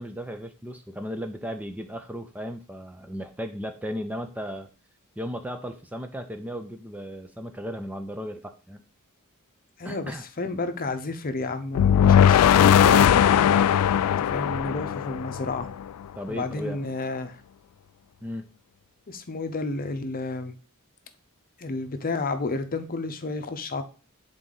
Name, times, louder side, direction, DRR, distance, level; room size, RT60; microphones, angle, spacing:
voice 1, 0.0-4.7 5.2-8.8 9.8-10.2 16.1-16.9 18.2-18.4, equal, 5° right, 7 dB, 0.4 m, -35 dB
voice 2, 9.8-13.4 14.3-15.7 16.3-17.4 19.1-20.5 21.6-23.8, left 3 dB, 40° left, 8 dB, 0.7 m, -31 dB
sound 1, 11.8-15.8, left 9 dB, 85° left, 0.3 m, -19 dB
8.0 x 3.9 x 3.8 m, 0.36 s
head